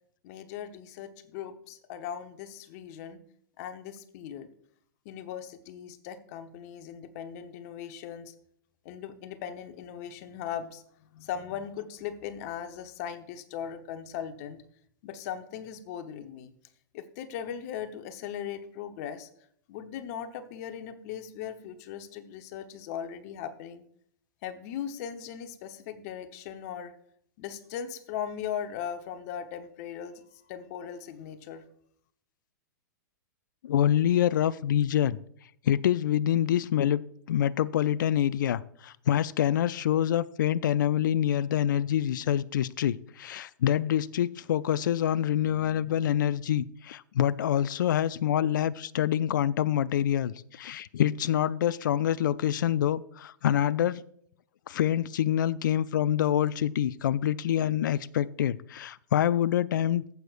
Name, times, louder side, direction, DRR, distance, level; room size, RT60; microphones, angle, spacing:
voice 1, 0.2-3.2 3.6-4.5 5.0-8.3 8.8-10.8 11.1-14.6 15.0-16.5 16.9-19.3 19.7-23.8 24.4-26.9 27.4-31.6, left 9 dB, 50° left, 9 dB, 1.0 m, -38 dB
voice 2, 33.6-35.2 35.6-37.0 37.3-54.0 54.7-60.0, left 10 dB, 75° left, 17 dB, 0.4 m, -26 dB
14.5 x 8.0 x 2.5 m, 0.66 s
hypercardioid pair, 115°, 11 cm